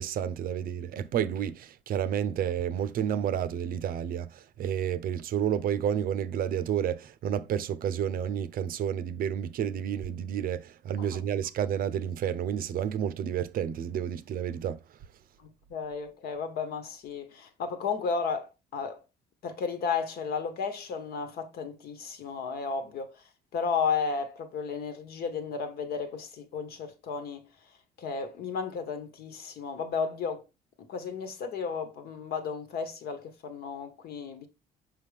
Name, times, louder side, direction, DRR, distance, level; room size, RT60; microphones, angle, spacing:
voice 1, 0.0-14.8, right 9 dB, 60° right, 0.6 m, -30 dB
voice 2, 15.4-19.0 19.4-23.2 23.5-27.5 28.0-30.4 30.9-34.5, left 5 dB, 65° left, 1.3 m, -33 dB
5.8 x 5.2 x 3.4 m
cardioid pair, 110°, 17 cm